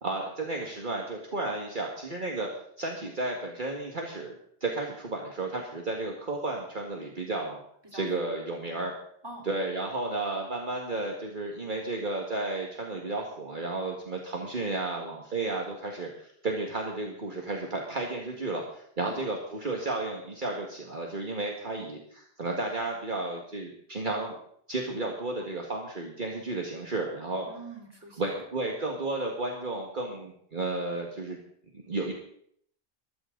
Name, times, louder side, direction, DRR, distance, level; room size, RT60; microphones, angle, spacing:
voice 1, 0.0-2.5 2.8-4.3 4.6-7.6 7.9-8.9 9.5-24.4 24.7-27.5 28.2-31.4 31.7-32.1, right 2 dB, 45° right, 0 dB, 2.0 m, -33 dB
voice 2, 27.4-28.4, right 2 dB, 20° right, -1 dB, 3.8 m, -44 dB
20.5 x 14.0 x 3.9 m, 0.66 s
omnidirectional pair, 1.1 m